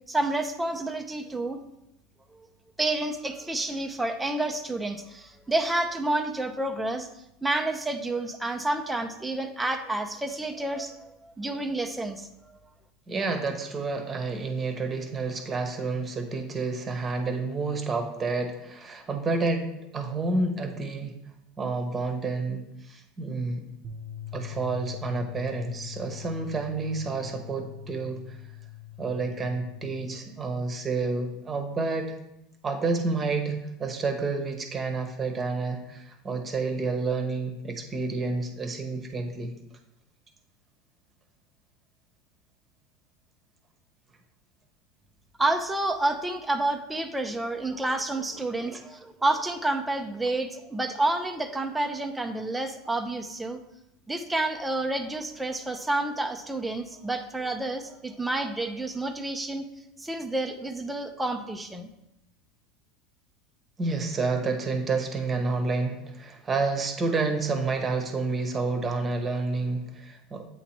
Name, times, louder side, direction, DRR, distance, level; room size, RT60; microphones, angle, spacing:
voice 1, 0.1-1.6 2.3-2.5 2.8-7.1 7.4-12.3 45.4-53.6 54.1-59.7 60.0-61.9, right 2 dB, 10° right, 5 dB, 0.5 m, -29 dB
voice 2, 13.1-21.1 21.6-23.6 24.3-28.4 29.0-32.2 32.6-39.5 48.7-48.8 63.8-70.5, right 3 dB, 30° right, 5 dB, 1.0 m, -29 dB
sound 1, 23.8-30.1, left 10 dB, 50° right, 0.8 m, -42 dB
8.0 x 2.9 x 4.4 m, 0.85 s
hypercardioid pair, 90°, 0 cm